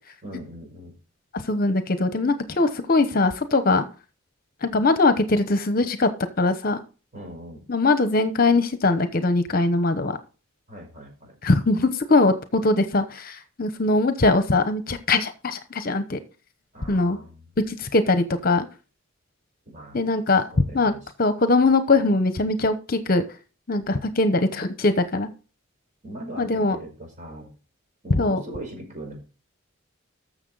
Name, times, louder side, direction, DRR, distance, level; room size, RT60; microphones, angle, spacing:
voice 1, 0.2-1.0 7.1-7.6 10.7-11.4 16.7-17.5 19.6-20.0 20.5-21.1 26.0-27.5 28.0-29.2, right 1 dB, 35° right, 2 dB, 5.1 m, -39 dB
voice 2, 1.3-3.8 4.6-6.1 6.4-6.8 7.7-10.2 11.4-16.2 16.9-17.2 17.7-18.7 19.9-20.4 20.7-20.9 21.2-23.2 23.7-25.3 26.4-26.8 28.1-28.4, left 3 dB, 45° left, 10 dB, 0.9 m, -21 dB
14.0 x 6.6 x 4.0 m, 0.34 s
head